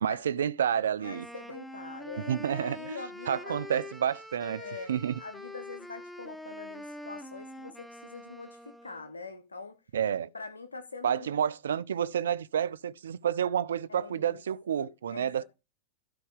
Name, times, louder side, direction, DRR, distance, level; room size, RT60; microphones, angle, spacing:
voice 1, 0.0-1.3 2.3-2.8 3.3-4.6 4.9-5.1 9.9-10.3 11.0-15.4, right 9 dB, 65° right, 0.4 m, -29 dB
voice 2, 1.0-3.6 4.4-4.9 5.2-9.8 10.3-11.4 13.9-14.4 14.8-15.4, left 4 dB, 75° left, 0.7 m, -44 dB
Wind instrument woodwind instrument, 1.0-9.1, left 1 dB, 5° left, 0.9 m, -45 dB
12.5 x 4.6 x 5.1 m
figure-of-eight pair, 90°, 0 cm